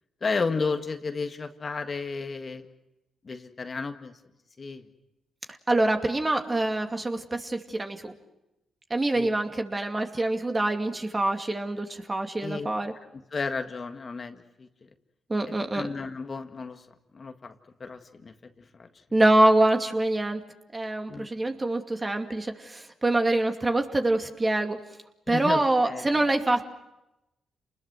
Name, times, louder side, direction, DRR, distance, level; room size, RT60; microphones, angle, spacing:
voice 1, 0.2-2.7 3.2-4.1 4.6-4.8 9.1-9.3 12.4-12.7 13.3-14.7 15.5-16.8 17.1-18.9 21.1-21.3 25.3-26.3, left 4 dB, 45° left, 7 dB, 1.8 m, -33 dB
voice 2, 5.7-8.1 8.9-12.9 15.3-15.8 19.1-20.4 20.7-24.8 25.3-26.6, right 2 dB, 25° right, 5 dB, 2.5 m, -25 dB
29.0 x 20.5 x 6.3 m, 0.91 s
hypercardioid pair, 45°, 0 cm